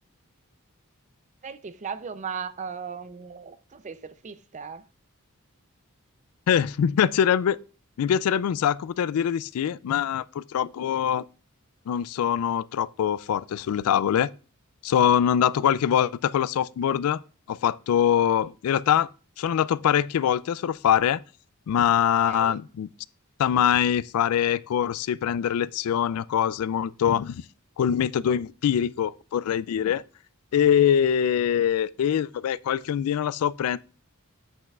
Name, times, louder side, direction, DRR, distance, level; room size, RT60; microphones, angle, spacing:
voice 1, 1.4-4.8 22.2-22.6, right 6 dB, 35° right, 0.5 m, -37 dB
voice 2, 6.5-7.6 8.0-11.2 11.9-14.3 14.8-17.2 17.5-19.1 19.4-21.2 21.7-22.9 23.4-27.4 27.8-30.0 30.5-33.8, left 9 dB, 80° left, 0.3 m, -23 dB
9.1 x 7.9 x 2.4 m
head